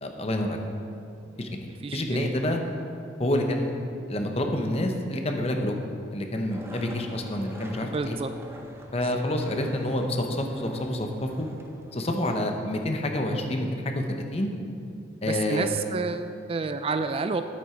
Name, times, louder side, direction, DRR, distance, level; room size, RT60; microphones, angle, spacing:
voice 1, 0.0-0.6 1.4-2.6 3.2-3.7 4.1-5.8 6.1-8.2 8.9-11.5 11.9-14.5 15.2-15.7, left 1 dB, 35° left, 4 dB, 0.9 m, -28 dB
voice 2, 1.8-2.3 7.8-8.3 9.0-9.1 15.3-17.4, right 4 dB, 35° right, 9 dB, 0.3 m, -30 dB
Skateboard, 6.5-12.1, right 1 dB, 15° right, 0.7 m, -45 dB
9.9 x 8.6 x 4.5 m, 2.6 s
head